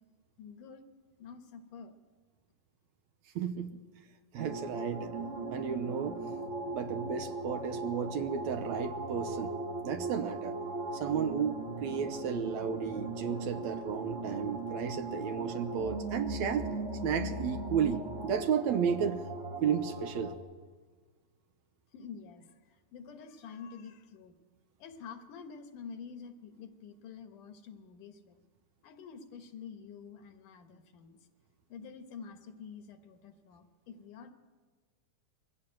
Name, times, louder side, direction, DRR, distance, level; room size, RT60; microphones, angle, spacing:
voice 1, 0.4-0.9 1.2-2.0 21.9-22.5 22.9-24.4 24.8-28.4 28.8-31.2 31.7-34.3, left 6 dB, 75° left, 7 dB, 2.9 m, -48 dB
voice 2, 3.4-3.8 4.3-5.1 5.5-6.2 6.7-9.5 9.8-10.6 10.9-16.7 17.0-19.2 19.6-20.3, right 7 dB, 70° right, 8 dB, 2.0 m, -33 dB
sound 1, 4.4-20.4, right 2 dB, 35° right, 1.2 m, -38 dB
23.0 x 15.5 x 8.9 m, 1.5 s
omnidirectional pair, 3.7 m